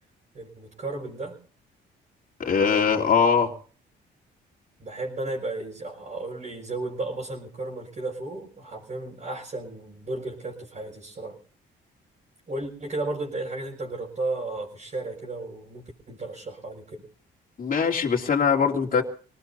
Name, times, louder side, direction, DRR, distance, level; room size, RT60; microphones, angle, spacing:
voice 1, 0.3-1.4 4.8-11.4 12.5-17.0, right 2 dB, 40° right, -4 dB, 5.7 m, -34 dB
voice 2, 2.4-3.5 17.6-19.0, left 6 dB, 45° left, 0 dB, 2.9 m, -21 dB
27.0 x 19.0 x 2.7 m, 0.41 s
cardioid pair, 90°, 20 cm